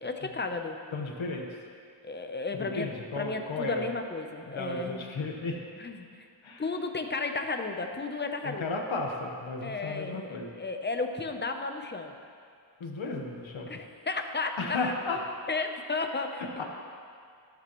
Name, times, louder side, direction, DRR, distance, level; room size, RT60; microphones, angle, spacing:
voice 1, 0.0-0.8 2.0-2.9 3.2-5.1 5.8-6.3 6.6-8.7 9.6-12.2 13.7-14.9 15.5-16.6, left 3 dB, 25° left, 5 dB, 0.7 m, -33 dB
voice 2, 0.9-1.5 2.5-3.8 4.5-5.6 6.4-6.6 8.4-10.5 12.8-13.7 14.6-15.2 16.6-16.7, left 3 dB, 75° left, 1 dB, 1.3 m, -34 dB
13.0 x 12.0 x 3.1 m, 2.3 s
wide cardioid pair, 125°, 47 cm